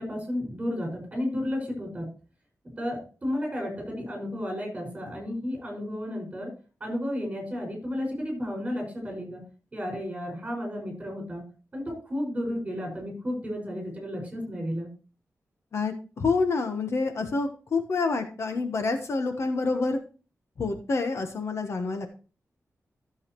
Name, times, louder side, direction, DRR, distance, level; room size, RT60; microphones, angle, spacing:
voice 1, 0.0-2.1 2.8-6.5 6.8-9.4 9.7-11.4 11.7-14.9, left 1 dB, 20° right, 1 dB, 5.8 m, -32 dB
voice 2, 15.7-20.0 20.6-22.1, left 4 dB, 55° left, 6 dB, 1.1 m, -27 dB
14.0 x 7.3 x 3.1 m, 0.36 s
wide cardioid pair, 175°, 6 cm